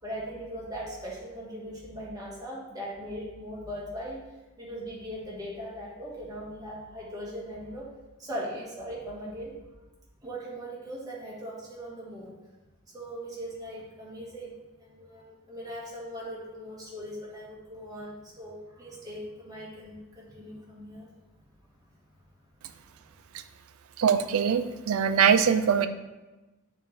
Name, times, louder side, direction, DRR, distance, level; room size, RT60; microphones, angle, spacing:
voice 1, 0.0-4.2 4.6-7.9 8.2-9.5 10.2-12.3 12.9-21.1, equal, 15° right, -5 dB, 1.4 m, -39 dB
voice 2, 24.0-25.9, right 7 dB, 75° right, 10 dB, 0.4 m, -22 dB
7.6 x 3.2 x 4.0 m, 1.1 s
head